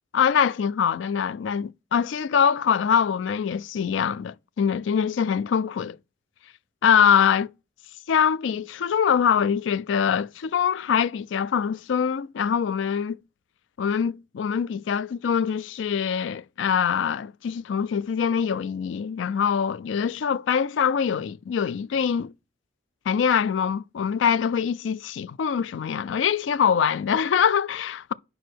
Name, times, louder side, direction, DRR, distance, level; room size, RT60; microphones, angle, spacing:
voice 1, 0.1-6.0 6.8-7.5 8.1-13.2 13.8-22.3 23.1-28.1, left 7 dB, 80° left, 0.3 m, -23 dB
5.1 x 4.7 x 6.2 m
head